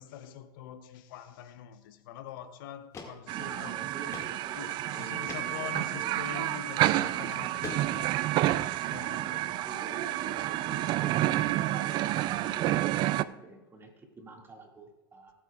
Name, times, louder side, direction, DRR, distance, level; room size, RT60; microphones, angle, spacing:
voice 1, 0.0-3.9 4.5-8.2 8.9-9.4, left 10 dB, 65° left, 0.8 m, -44 dB
sound 1, 2.3-2.4 2.9-3.1 3.4-3.5 4.1-4.3 4.7-4.8 5.3-5.4 6.6-6.8 7.3-8.2, left 4 dB, 25° left, 2.0 m, -42 dB
voice 2, 3.3-6.2 6.9-7.5 9.1-15.3, right 2 dB, 20° right, 2.1 m, -47 dB
sound 2, 3.3-13.2, right 15 dB, 40° right, 0.3 m, -29 dB
19.5 x 8.8 x 2.4 m
hypercardioid pair, 115°, 12 cm